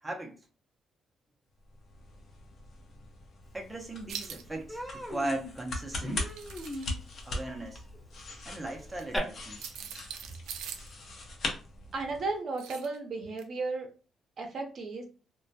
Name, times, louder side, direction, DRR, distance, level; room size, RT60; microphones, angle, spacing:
voice 1, 0.0-0.4 3.5-6.4 6.6-6.9 7.2-7.8 8.5-9.6, right 2 dB, 15° right, 0.6 m, -38 dB
sound 1, 1.6-12.4, left 2 dB, 55° left, 0.6 m, -41 dB
Human voice, 3.7-3.8 4.1-4.3 4.7-9.2, left 1 dB, 15° left, 0.9 m, -40 dB
sound 2, 4.1-4.4 6.1-6.9 8.9-9.0 9.6-10.9 12.6-13.0 13.4-13.5, right 8 dB, 90° right, 0.3 m, -42 dB
voice 2, 11.9-13.9 14.4-15.1, right 3 dB, 55° right, 0.6 m, -34 dB
2.1 x 2.1 x 2.6 m
cardioid pair, 90°, 0 cm